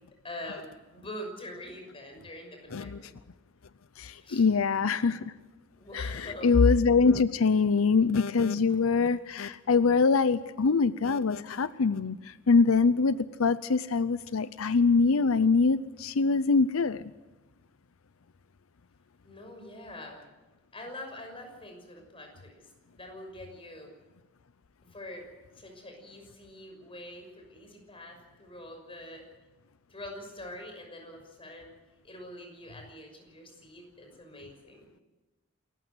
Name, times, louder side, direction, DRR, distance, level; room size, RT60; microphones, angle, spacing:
voice 1, 0.2-3.1 4.1-4.5 5.7-6.5 19.2-20.2 20.7-23.9 24.8-25.3 25.6-29.3 29.9-31.7 32.0-35.0, left 1 dB, 25° left, 4 dB, 6.2 m, -45 dB
voice 2, 4.0-5.3 5.9-17.1, left 4 dB, 90° left, 15 dB, 0.6 m, -24 dB
27.5 x 15.0 x 8.0 m, 1.1 s
head